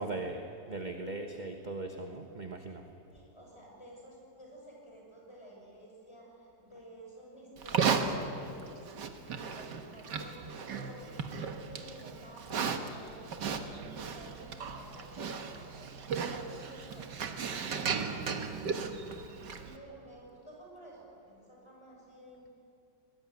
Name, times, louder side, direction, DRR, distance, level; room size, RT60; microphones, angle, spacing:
voice 1, 0.0-2.9 15.5-15.7, right 2 dB, 30° right, 4 dB, 1.2 m, -39 dB
voice 2, 3.1-8.9 9.2-10.4 10.7-13.5 13.9-18.2 18.7-19.1 19.5-22.5, right 1 dB, 15° left, -2 dB, 6.9 m, -52 dB
Livestock farm animals working animals, 7.6-19.8, right 5 dB, 70° right, 2.0 m, -36 dB
23.0 x 19.5 x 9.5 m, 2.6 s
omnidirectional pair, 2.0 m